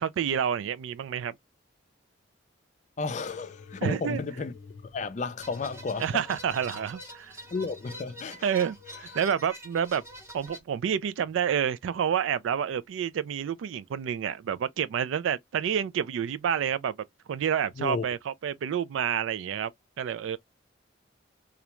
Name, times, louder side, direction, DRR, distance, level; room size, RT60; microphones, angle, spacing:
voice 1, 0.0-1.3 3.8-4.2 6.0-7.4 8.4-10.0 10.3-17.0 17.3-19.7 20.0-20.4, right 8 dB, 85° right, 0.3 m, -29 dB
voice 2, 3.0-4.5 4.8-6.2 7.5-8.5 17.8-18.0, left 4 dB, 40° left, 0.4 m, -33 dB
sound 1, 3.3-10.5 11.0-11.8 12.5-13.1 14.0-14.1, left 5 dB, 85° left, 0.6 m, -53 dB
sound 2, 5.4-10.6, equal, 15° right, 0.7 m, -45 dB
2.4 x 2.1 x 2.9 m
head